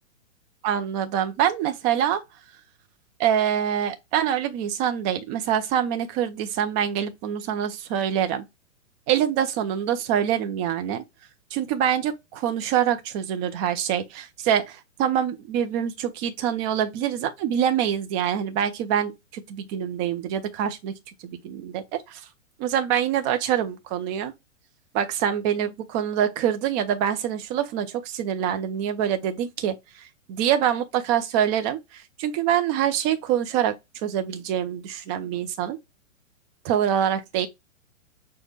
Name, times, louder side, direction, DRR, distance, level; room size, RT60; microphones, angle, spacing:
voice 1, 0.6-2.2 3.2-8.5 9.1-11.0 11.5-20.9 21.2-22.2 22.6-24.3 24.9-29.7 30.3-33.7 34.0-35.8 36.6-37.5, right 9 dB, 20° right, 0.4 m, -25 dB
6.4 x 2.2 x 3.2 m
figure-of-eight pair, 115°, 39 cm